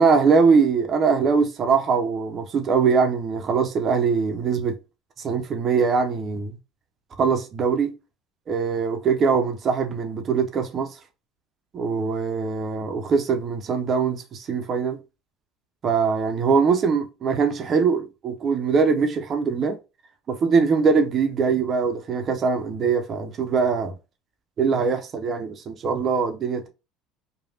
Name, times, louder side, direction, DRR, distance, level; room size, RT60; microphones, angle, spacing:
voice 1, 0.0-4.8 5.2-6.6 7.2-7.9 8.5-10.9 11.7-15.0 15.8-19.8 20.3-23.9 24.6-26.7, right 5 dB, 45° right, 0.7 m, -22 dB
3.1 x 2.3 x 2.6 m
hypercardioid pair, 75°, 0 cm